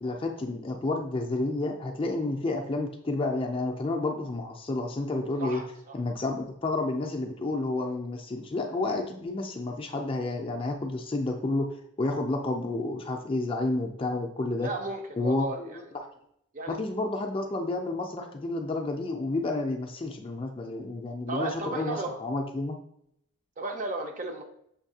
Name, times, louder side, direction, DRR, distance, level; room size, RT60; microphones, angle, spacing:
voice 1, 0.0-5.6 5.9-11.7 12.0-14.7 15.2-15.7 15.9-16.1 16.7-22.8, left 2 dB, 25° left, 3 dB, 0.4 m, -30 dB
voice 2, 5.4-6.0 14.6-15.8 16.5-16.8 21.3-22.1 23.6-24.4, right 2 dB, 35° right, 4 dB, 0.5 m, -34 dB
6.4 x 2.7 x 2.7 m, 0.72 s
head